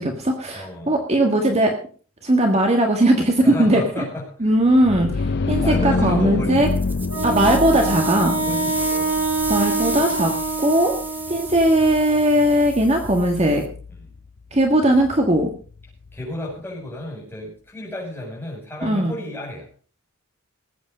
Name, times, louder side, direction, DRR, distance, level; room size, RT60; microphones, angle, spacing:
voice 1, 0.0-1.7 2.2-4.0 4.4-6.7 7.2-8.4 9.5-10.3 10.6-10.9 11.3-13.6 14.5-15.5 18.8-19.1, right 1 dB, 30° right, 3 dB, 1.7 m, -18 dB
voice 2, 0.5-1.0 3.4-4.5 4.9-5.1 5.6-6.8 8.3-9.1 13.9-14.0 16.1-19.7, left 1 dB, 10° left, -3 dB, 6.7 m, -33 dB
sound 1, 4.6-16.3, left 3 dB, 50° left, 0.5 m, -28 dB
sound 2, 6.6-13.7, right 2 dB, 10° right, 1.7 m, -34 dB
Wind instrument woodwind instrument, 7.1-11.7, right 3 dB, 85° right, 4.9 m, -25 dB
19.5 x 8.6 x 5.2 m, 0.41 s
head